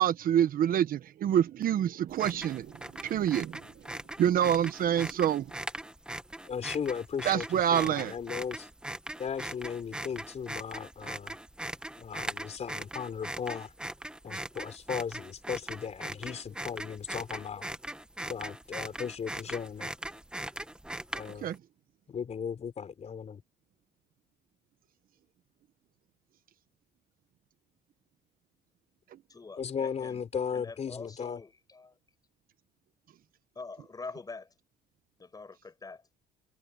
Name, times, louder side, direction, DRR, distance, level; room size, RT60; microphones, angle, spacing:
voice 1, 0.0-2.7 3.0-3.6 4.2-5.5 7.2-8.1 21.4-21.6, right 10 dB, 55° right, 1.2 m, -26 dB
sound 1, 2.1-21.6, right 1 dB, 5° right, 1.5 m, -40 dB
voice 2, 6.4-8.7 9.2-11.4 12.0-13.7 14.2-17.7 18.3-19.9 21.1-21.5 22.1-23.4 29.6-31.4, left 7 dB, 40° left, 4.0 m, -36 dB
voice 3, 29.3-30.2 30.5-31.9 33.6-34.5 35.2-36.0, left 4 dB, 20° left, 5.7 m, -45 dB
cardioid pair, 110°, 17 cm